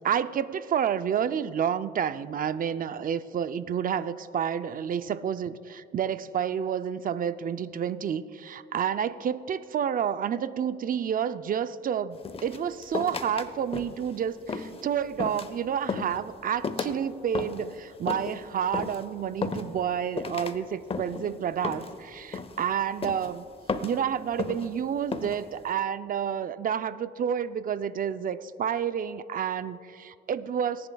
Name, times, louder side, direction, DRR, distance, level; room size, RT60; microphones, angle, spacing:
voice 1, 0.0-23.4 23.8-30.9, right 8 dB, 45° right, 13 dB, 0.5 m, -29 dB
sound 1, 12.3-13.5 13.7-14.1 14.5-14.8 15.2-15.6 15.9-16.2 16.6-17.0 17.4-17.7 18.1-18.4 18.7-19.0 19.4-19.9 20.2-20.6 20.9-21.3 21.6-22.0 22.3-22.7 23.0-23.3 23.7-24.0 24.4-24.7 25.1-25.4, left 4 dB, 30° left, 0.7 m, -33 dB
18.5 x 10.5 x 2.3 m, 2.6 s
cardioid pair, 90°, 20 cm